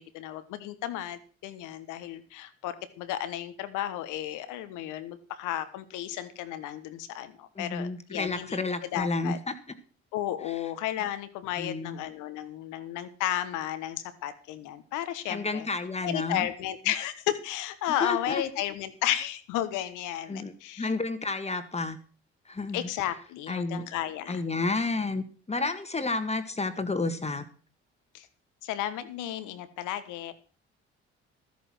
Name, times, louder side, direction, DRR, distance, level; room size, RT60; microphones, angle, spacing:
voice 1, 0.0-8.6 8.9-9.4 10.1-15.7 16.0-20.9 22.7-24.4 28.1-28.3 28.6-30.3, left 12 dB, 70° left, 12 dB, 1.4 m, -33 dB
voice 2, 7.6-9.5 11.6-12.0 15.3-16.5 18.0-18.4 20.3-20.5 20.8-22.0 22.5-22.9 23.5-23.8 24.3-27.4, left 3 dB, 20° left, 9 dB, 1.8 m, -31 dB
13.5 x 8.4 x 6.3 m, 0.40 s
hypercardioid pair, 55°, 32 cm